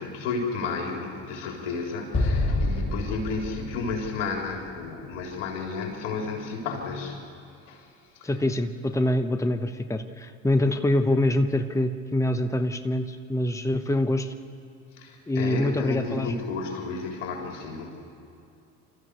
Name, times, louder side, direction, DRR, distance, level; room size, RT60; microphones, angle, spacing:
voice 1, 0.0-7.2 7.7-7.9 8.1-8.3 14.9-18.0, left 4 dB, 75° left, 1 dB, 3.7 m, -32 dB
Explosion, 2.1-5.4, left 2 dB, 35° left, 4.4 m, -28 dB
voice 2, 8.2-14.3 15.3-16.4, left 1 dB, 10° left, 9 dB, 1.2 m, -25 dB
28.5 x 14.0 x 8.2 m, 2.6 s
hypercardioid pair, 60°, 36 cm